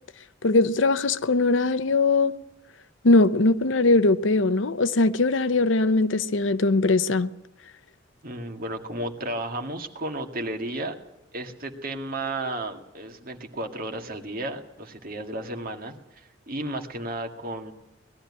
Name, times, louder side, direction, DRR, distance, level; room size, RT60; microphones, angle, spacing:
voice 1, 0.4-2.3 3.0-7.3, left 3 dB, 70° left, 0.7 m, -21 dB
voice 2, 8.2-11.0 11.3-17.7, right 1 dB, 50° right, 1.9 m, -33 dB
20.0 x 13.0 x 9.7 m
head